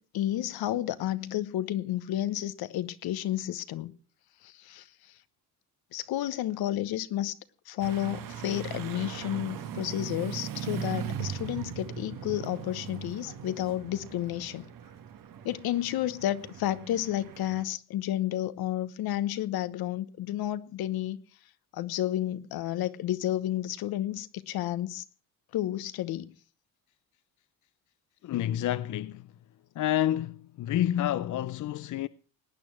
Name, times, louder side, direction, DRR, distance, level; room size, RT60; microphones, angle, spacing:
voice 1, 0.0-3.9 4.4-4.9 5.9-7.4 7.7-14.7 15.4-21.2 21.7-25.0 25.5-26.3, left 13 dB, 70° left, 1.0 m, -31 dB
sound 1, 7.8-17.6, right 8 dB, 60° right, 1.5 m, -39 dB
voice 2, 28.2-29.3 29.8-32.1, left 12 dB, 50° left, 0.6 m, -29 dB
18.5 x 9.1 x 6.0 m
cardioid pair, 90°, 38 cm